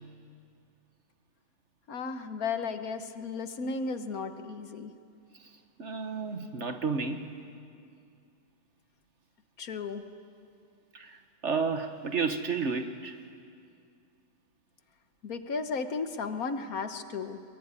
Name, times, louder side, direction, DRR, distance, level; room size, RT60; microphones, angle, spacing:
voice 1, 1.9-4.9 9.6-10.0 15.2-17.4, left 4 dB, 65° left, 8 dB, 1.6 m, -34 dB
voice 2, 5.3-7.3 10.9-13.2, right 5 dB, 50° right, 7 dB, 1.4 m, -32 dB
22.5 x 22.5 x 9.7 m, 2.4 s
omnidirectional pair, 1.7 m